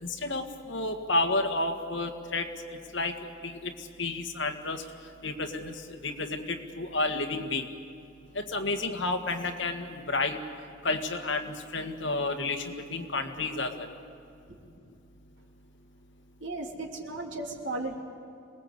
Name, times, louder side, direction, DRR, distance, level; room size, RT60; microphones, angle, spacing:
voice 1, 0.0-2.5 2.9-3.1 3.4-3.7 4.0-4.8 5.2-5.7 6.0-7.7 8.3-10.4 10.8-13.8, left 2 dB, 70° left, 5 dB, 1.8 m, -31 dB
voice 2, 16.4-18.0, right 2 dB, 75° right, 1 dB, 3.1 m, -35 dB
26.5 x 20.0 x 8.2 m, 2.5 s
head